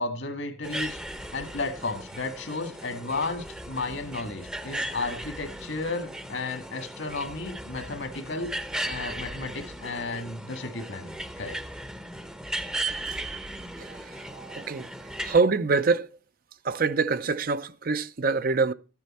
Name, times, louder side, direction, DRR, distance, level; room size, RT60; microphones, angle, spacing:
voice 1, 0.0-8.5 8.8-11.6, left 3 dB, 75° left, 1.9 m, -33 dB
sound 1, 0.6-15.4, right 1 dB, 5° right, 0.7 m, -37 dB
voice 2, 14.3-14.9 15.2-16.1 16.6-18.7, right 4 dB, 50° right, 0.6 m, -25 dB
13.0 x 9.8 x 4.3 m
head